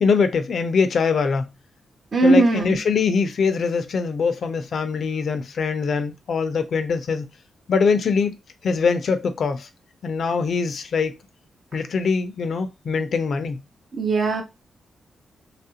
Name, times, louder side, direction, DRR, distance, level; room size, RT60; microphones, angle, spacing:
voice 1, 0.0-1.5 2.2-7.3 7.7-8.4 8.6-9.7 10.0-11.2 11.7-13.6, left 5 dB, 60° left, 0.5 m, -22 dB
voice 2, 2.1-2.8 13.9-14.4, right 2 dB, 45° right, 0.7 m, -18 dB
2.9 x 2.5 x 2.7 m
wide cardioid pair, 135°, 0 cm